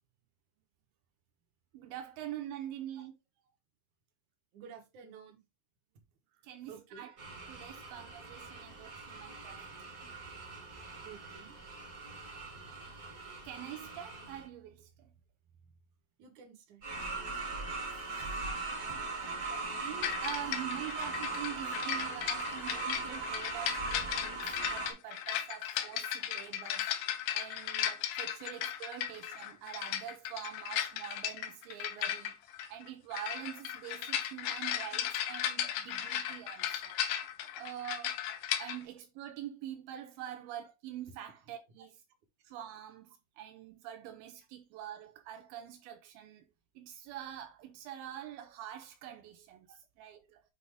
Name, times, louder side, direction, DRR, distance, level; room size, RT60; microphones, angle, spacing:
voice 1, 1.7-3.1 6.4-7.2 7.5-10.1 13.4-15.1 17.9-18.5 18.9-19.0 19.5-26.9 27.3-37.0 37.6-38.2 38.6-42.0 42.4-46.4 46.8-50.4, right 11 dB, 85° right, 2.5 m, -45 dB
voice 2, 4.5-5.4 6.7-7.1 11.1-11.5 16.2-16.8 22.6-22.8 24.4-24.5 49.7-49.8, right 6 dB, 65° right, 2.6 m, -52 dB
sound 1, 7.2-14.4 16.8-24.9, right 3 dB, 45° right, 1.1 m, -40 dB
sound 2, 20.0-38.8, left 10 dB, 85° left, 2.4 m, -36 dB
7.6 x 2.7 x 4.8 m
omnidirectional pair, 4.0 m